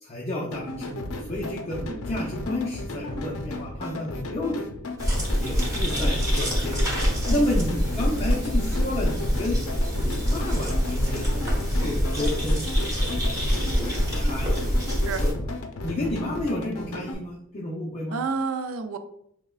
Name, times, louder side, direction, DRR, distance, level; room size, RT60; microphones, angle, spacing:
voice 1, 0.0-1.8 2.1-4.7 5.4-7.0 7.3-9.6 10.0-11.4 11.8-12.6 12.9-14.7 15.2-15.5 15.8-18.2, left 1 dB, 30° left, -4 dB, 0.6 m, -31 dB
sound 1, 0.5-17.1, left 1 dB, 80° left, 0.5 m, -34 dB
sound 2, 5.0-15.3, equal, 15° right, 1.1 m, -25 dB
voice 2, 18.1-19.0, right 4 dB, 70° right, 8 dB, 0.4 m, -30 dB
5.7 x 2.2 x 2.3 m, 0.74 s
head